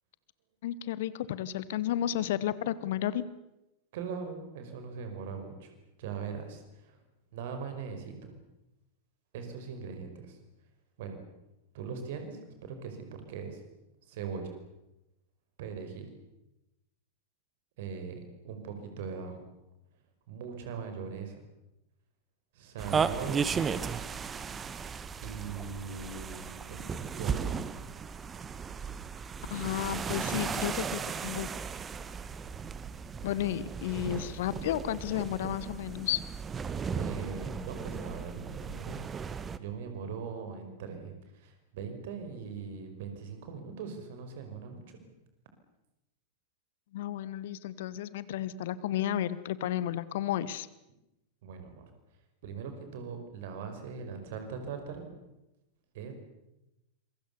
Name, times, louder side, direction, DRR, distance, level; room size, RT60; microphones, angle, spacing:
voice 1, 0.6-3.2 29.5-31.5 33.2-36.2 46.9-50.7, left 12 dB, 55° left, 17 dB, 1.2 m, -32 dB
voice 2, 3.9-5.7 6.0-7.0 7.3-8.3 9.3-10.4 11.0-11.2 11.7-13.6 14.1-14.6 15.6-16.1 17.8-18.2 18.4-19.5 20.3-21.4 22.5-23.5 25.2-27.6 36.9-39.0 39.6-45.0 51.4-51.9 52.4-55.1 55.9-56.1, right 6 dB, 55° right, 6 dB, 5.4 m, -40 dB
sound 1, 22.8-39.6, right 6 dB, 20° right, 1.3 m, -36 dB
26.5 x 23.5 x 7.0 m, 0.91 s
figure-of-eight pair, 90°, 0 cm